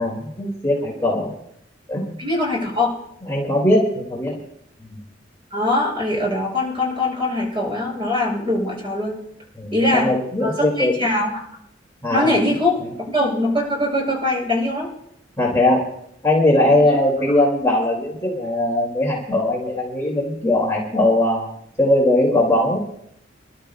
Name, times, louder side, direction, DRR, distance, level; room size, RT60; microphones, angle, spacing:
voice 1, 0.0-1.3 1.9-2.2 3.2-4.4 4.9-5.0 9.5-11.0 12.0-12.3 15.4-15.9 16.2-21.5 21.8-22.8, left 1 dB, 15° left, -3 dB, 2.4 m, -20 dB
voice 2, 2.2-2.9 5.5-9.2 9.7-10.1 10.4-11.3 12.1-12.8 13.1-14.9 16.7-17.0, left 1 dB, 25° right, -2 dB, 6.6 m, -22 dB
27.5 x 12.0 x 2.3 m, 0.74 s
head